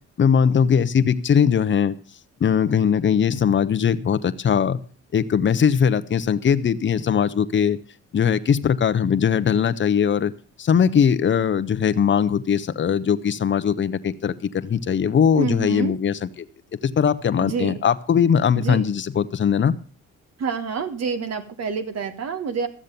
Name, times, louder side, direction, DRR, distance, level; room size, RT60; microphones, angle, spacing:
voice 1, 0.2-1.9 2.4-4.8 5.1-7.8 8.1-10.3 10.6-16.3 16.8-19.7, left 7 dB, 40° left, 12 dB, 0.8 m, -20 dB
voice 2, 15.4-16.0 17.4-17.8 18.6-18.8 20.4-22.7, right 5 dB, 55° right, 9 dB, 1.4 m, -27 dB
13.5 x 7.4 x 6.8 m, 0.41 s
cardioid pair, 90°, 30 cm